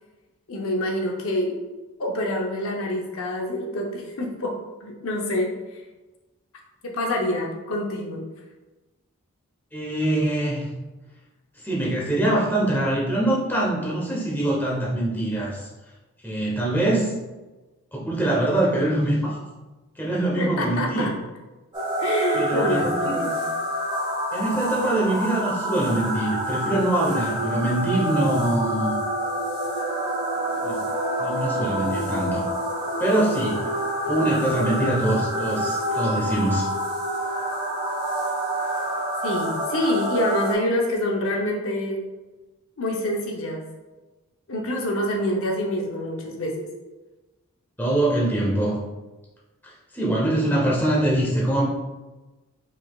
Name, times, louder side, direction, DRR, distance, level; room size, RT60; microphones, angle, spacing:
voice 1, 0.5-1.6 2.0-4.5 4.8-5.8 6.8-8.3 20.4-21.1 22.0-23.4 39.2-42.0 42.8-43.7 44.5-46.7, left 1 dB, 65° left, 0 dB, 0.7 m, -26 dB
voice 2, 9.7-10.7 11.6-15.7 16.2-17.1 17.9-19.4 20.0-21.1 22.3-23.3 24.3-29.0 30.6-30.9 31.2-32.5 33.0-33.6 34.1-36.7 47.8-48.8 49.6-51.6, right 1 dB, 10° left, -5 dB, 0.9 m, -24 dB
sound 1, 21.7-40.5, right 1 dB, 20° right, 0.9 m, -27 dB
4.9 x 4.0 x 2.4 m, 1.1 s
head